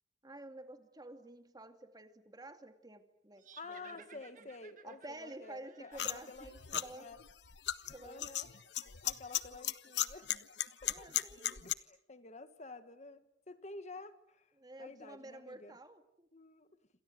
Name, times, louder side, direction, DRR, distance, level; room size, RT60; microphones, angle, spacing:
voice 1, 0.2-4.5 4.8-7.1 7.9-8.3 10.8-11.6 14.6-16.3, right 1 dB, 20° right, 7 dB, 2.3 m, -51 dB
sound 1, 3.4-6.8, right 7 dB, 45° right, 1.6 m, -60 dB
voice 2, 3.6-7.2 8.0-8.5 9.0-10.3 10.8-11.2 11.6-14.5 14.8-15.8 16.3-16.7, left 3 dB, 40° left, 11 dB, 1.6 m, -50 dB
sound 2, 6.0-11.7, left 12 dB, 70° left, 1.1 m, -37 dB
28.5 x 26.5 x 7.8 m, 0.77 s
head